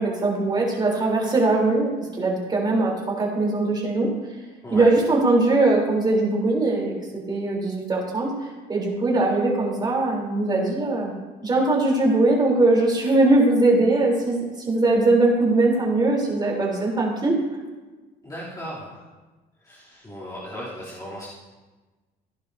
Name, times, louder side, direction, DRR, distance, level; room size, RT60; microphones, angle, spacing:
voice 1, 0.0-4.1 4.7-6.9 7.3-11.1 11.4-17.3, right 2 dB, 25° right, -2 dB, 3.6 m, -21 dB
voice 2, 18.2-19.0 19.6-21.3, equal, 20° left, -9 dB, 3.0 m, -36 dB
15.5 x 11.0 x 2.7 m, 1.3 s
cardioid pair, 110°, 17 cm